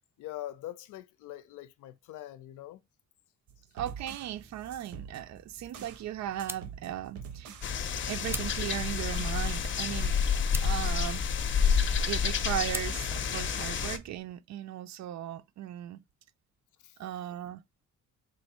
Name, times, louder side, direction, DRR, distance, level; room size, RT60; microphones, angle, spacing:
voice 1, 0.2-2.8 16.8-17.0, left 14 dB, 85° left, 0.6 m, -43 dB
sound 1, 3.5-6.1 6.4-7.8 8.1-9.4 9.8-11.2, right 7 dB, 80° right, 0.8 m, -46 dB
voice 2, 3.7-7.6 8.1-11.2 12.1-16.0 17.0-17.6, right 12 dB, 65° right, 0.4 m, -37 dB
sound 2, 3.8-14.2, right 2 dB, 10° right, 0.4 m, -47 dB
sound 3, 7.6-14.0, left 6 dB, 40° left, 0.6 m, -29 dB
3.3 x 2.5 x 4.2 m
cardioid pair, 90°, 30 cm